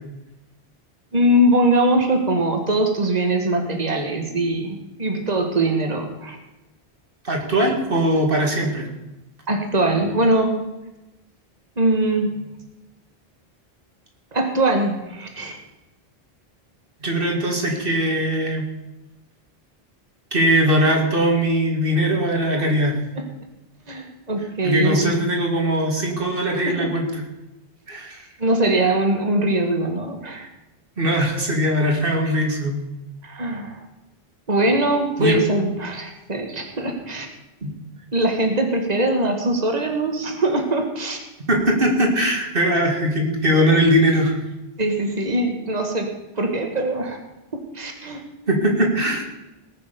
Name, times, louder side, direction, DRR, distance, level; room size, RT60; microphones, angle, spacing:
voice 1, 1.1-6.4 9.5-10.6 11.8-12.4 14.3-15.6 23.2-23.3 23.9-25.1 26.7-26.8 28.4-30.5 33.2-33.8 34.5-37.3 38.1-41.2 44.8-46.1 46.4-47.2 47.5-48.2, right 1 dB, 40° right, 4 dB, 1.9 m, -22 dB
voice 2, 7.2-8.9 17.0-18.7 20.3-23.0 24.6-27.1 27.9-28.3 31.0-32.8 35.2-35.4 37.6-37.7 41.4-44.4 48.5-49.2, equal, 60° right, 1 dB, 2.5 m, -20 dB
19.0 x 6.8 x 6.9 m, 0.99 s
omnidirectional pair, 1.0 m